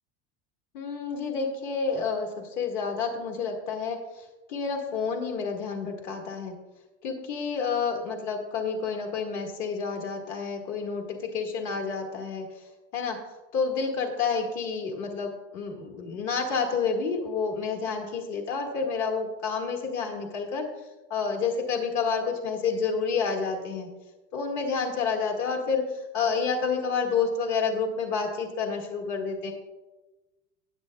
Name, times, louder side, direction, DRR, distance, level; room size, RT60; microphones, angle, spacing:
voice 1, 0.7-6.5 7.0-12.5 12.9-13.2 13.5-20.7 21.1-23.9 24.3-25.8 26.1-29.5, left 5 dB, 50° left, 2 dB, 1.8 m, -29 dB
19.0 x 7.6 x 2.3 m, 1.1 s
cardioid pair, 155°, 34 cm